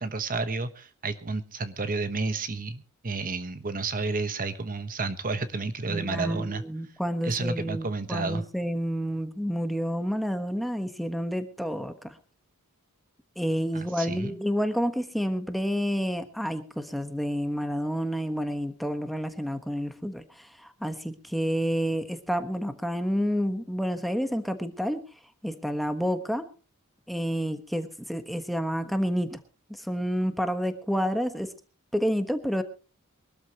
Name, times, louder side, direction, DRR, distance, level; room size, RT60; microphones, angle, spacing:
voice 1, 0.0-6.6 7.2-8.4 13.7-14.4, right 3 dB, 40° right, 11 dB, 1.1 m, -31 dB
voice 2, 5.9-12.2 13.4-20.5 20.8-25.0 25.4-26.5 27.1-29.4 29.7-31.5 31.9-32.6, equal, ahead, 8 dB, 1.3 m, -29 dB
23.5 x 13.0 x 3.0 m, 0.35 s
head